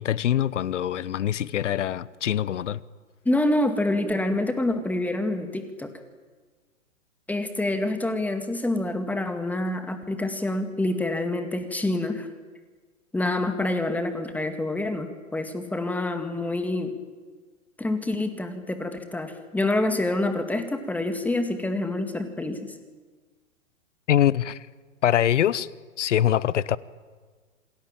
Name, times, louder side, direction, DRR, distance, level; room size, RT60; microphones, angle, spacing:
voice 1, 0.0-2.8 24.1-24.7 25.0-25.7 26.0-26.8, left 11 dB, 65° left, 1.0 m, -23 dB
voice 2, 3.3-5.9 7.3-12.3 13.1-16.9 17.8-22.7, left 2 dB, 5° left, 2.2 m, -27 dB
28.0 x 20.0 x 9.0 m
hypercardioid pair, 125°, 39 cm